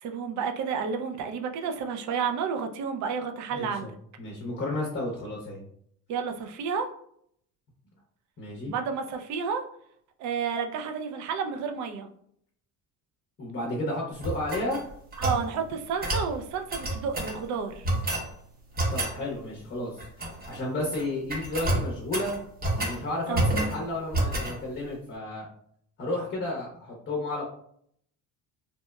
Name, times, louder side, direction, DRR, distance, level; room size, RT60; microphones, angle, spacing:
voice 1, 0.0-3.9 6.1-6.9 8.7-9.6 10.2-12.1 15.2-17.9 23.3-23.5, right 6 dB, 50° right, 6 dB, 0.4 m, -31 dB
voice 2, 3.5-3.9 4.2-5.6 8.4-8.7 13.4-14.8 18.9-20.1 20.5-22.3 22.8-25.5 26.0-27.4, left 1 dB, 30° left, -2 dB, 0.7 m, -32 dB
sound 1, 14.2-15.4 16.0-16.3 16.7-17.4 17.8-18.3 18.8-19.2 20.0-20.6 20.8-21.0 21.3-23.0 23.3-23.8 24.1-24.6, right 1 dB, 25° right, 0.8 m, -28 dB
2.9 x 2.0 x 2.2 m, 0.66 s
cardioid pair, 95°, 38 cm